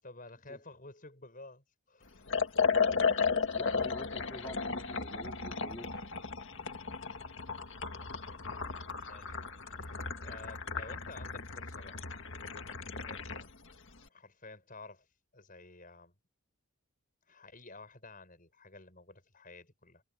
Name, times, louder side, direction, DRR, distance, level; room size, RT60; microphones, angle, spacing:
voice 1, 0.0-2.3 7.9-8.1 9.1-9.4 9.7-12.0 12.9-13.5 14.1-15.1 15.3-16.1 17.3-20.0, left 3 dB, 40° left, 7.9 m, -52 dB
Liquid, 2.3-13.5, left 5 dB, 60° left, 1.9 m, -34 dB
voice 2, 3.5-6.0, left 1 dB, 20° left, 4.3 m, -47 dB
head